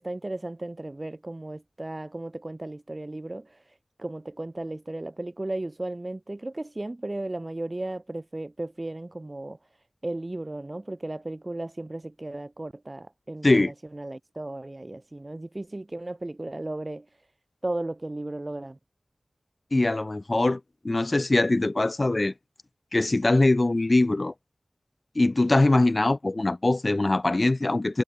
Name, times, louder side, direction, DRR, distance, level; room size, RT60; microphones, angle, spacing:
voice 1, 0.0-9.6 10.0-17.1 17.6-18.8, right 2 dB, 35° right, 5.4 m, -35 dB
voice 2, 19.7-22.3 22.9-24.3 25.1-28.0, left 2 dB, 40° left, 5.2 m, -22 dB
wide cardioid pair, 60°, 0 cm